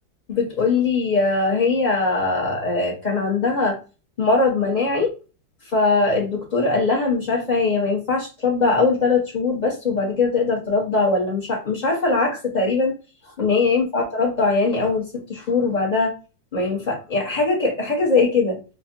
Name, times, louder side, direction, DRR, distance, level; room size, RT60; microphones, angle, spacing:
voice 1, 0.3-3.8 4.2-5.1 5.7-12.9 13.4-16.1 16.5-18.6, left 3 dB, 30° left, -2 dB, 0.8 m, -21 dB
4.5 x 2.3 x 2.6 m, 0.32 s
omnidirectional pair, 2.1 m